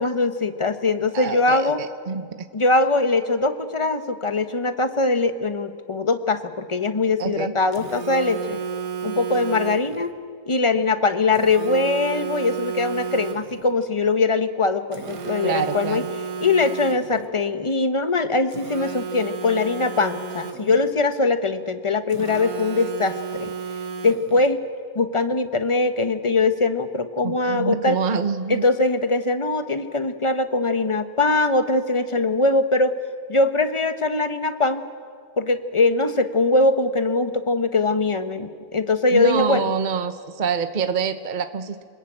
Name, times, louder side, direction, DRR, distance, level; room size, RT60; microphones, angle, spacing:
voice 1, 0.0-1.8 2.5-8.6 9.0-10.1 10.5-16.0 16.4-23.5 24.0-24.6 24.9-28.0 28.5-32.9 33.3-34.8 35.4-39.7, left 3 dB, 25° left, 10 dB, 1.0 m, -22 dB
voice 2, 1.1-2.5 7.2-7.6 15.4-16.1 27.2-28.6 39.1-41.8, right 6 dB, 35° right, 10 dB, 0.9 m, -26 dB
Telephone, 7.7-10.1 11.3-13.7 14.9-17.3 18.5-20.9 22.1-24.5, right 6 dB, 75° right, 1.7 m, -32 dB
28.5 x 21.0 x 8.8 m, 2.1 s
omnidirectional pair, 1.6 m